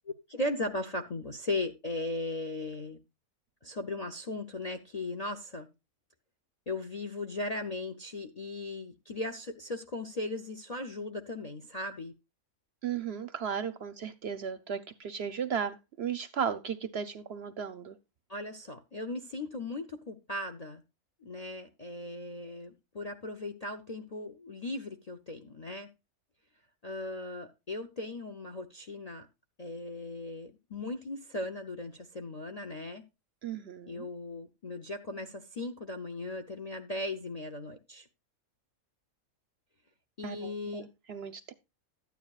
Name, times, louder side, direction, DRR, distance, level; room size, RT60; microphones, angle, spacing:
voice 1, 0.1-3.0 3.6-5.7 6.7-12.1 18.3-20.8 21.2-25.9 26.8-29.3 29.6-33.0 33.9-38.1 40.2-40.9, left 2 dB, 45° left, 0.5 m, -37 dB
voice 2, 12.8-18.0 33.4-34.1 40.2-41.5, right 7 dB, 60° right, 0.7 m, -35 dB
13.0 x 9.3 x 2.3 m
omnidirectional pair, 1.5 m